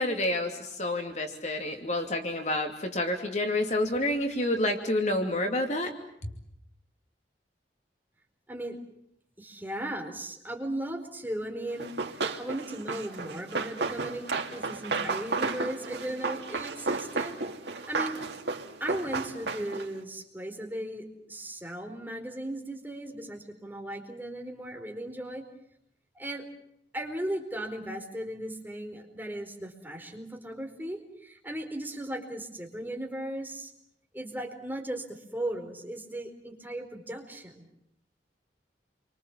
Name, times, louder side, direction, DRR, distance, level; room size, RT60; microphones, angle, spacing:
voice 1, 0.0-5.9 6.2-6.3, left 1 dB, 40° left, 4 dB, 2.7 m, -29 dB
voice 2, 9.4-11.9 12.2-17.3 17.7-18.2 18.8-25.4 26.1-26.4 26.9-33.7 34.1-37.7, right 1 dB, 10° right, 2 dB, 4.4 m, -37 dB
Run, 11.8-20.0, right 3 dB, 75° right, 2.6 m, -33 dB
29.5 x 25.0 x 7.4 m, 0.73 s
head